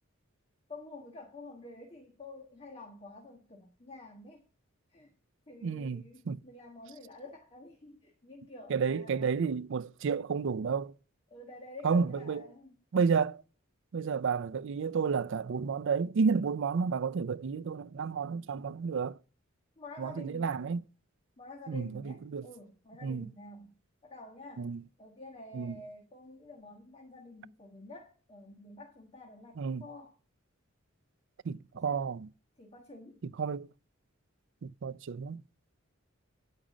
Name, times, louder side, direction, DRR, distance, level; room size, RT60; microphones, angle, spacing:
voice 1, 0.7-4.4 4.9-5.1 5.5-9.4 11.3-12.7 19.8-20.6 21.4-23.7 24.0-24.7 25.0-30.1 31.7-32.1 32.6-33.2, left 2 dB, 30° left, 1.6 m, -49 dB
voice 2, 5.6-6.4 8.7-10.9 11.8-12.4 12.9-13.4 13.9-19.2 20.0-20.8 21.7-22.5 23.0-23.3 24.6-24.8 25.5-25.8 29.6-29.9 31.4-32.3 33.4-33.7 34.6-35.4, right 5 dB, 60° right, 0.4 m, -31 dB
10.5 x 5.0 x 7.3 m
head